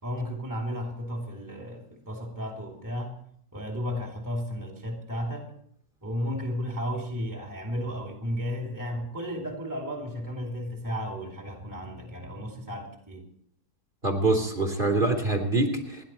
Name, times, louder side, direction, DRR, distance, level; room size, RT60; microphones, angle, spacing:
voice 1, 0.0-3.2 3.5-5.5 6.0-13.3, equal, 10° right, 1 dB, 2.5 m, -33 dB
voice 2, 14.0-16.0, right 2 dB, 30° right, 2 dB, 3.1 m, -25 dB
29.0 x 11.0 x 4.4 m, 0.70 s
omnidirectional pair, 1.8 m